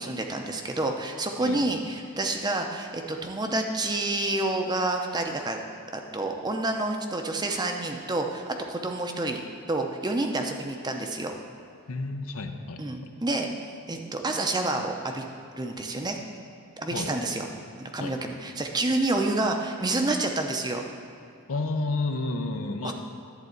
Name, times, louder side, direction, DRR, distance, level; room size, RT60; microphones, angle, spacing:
voice 1, 0.0-5.6 5.9-9.4 9.7-11.3 12.8-13.5 13.9-15.2 15.6-16.2 16.8-17.4 17.8-20.8 22.8-22.9, right 2 dB, 20° right, 3 dB, 0.6 m, -28 dB
voice 2, 11.9-13.2 16.9-17.2 18.0-18.1 21.5-22.9, left 2 dB, 70° left, 6 dB, 0.7 m, -31 dB
11.0 x 4.1 x 7.8 m, 2.5 s
head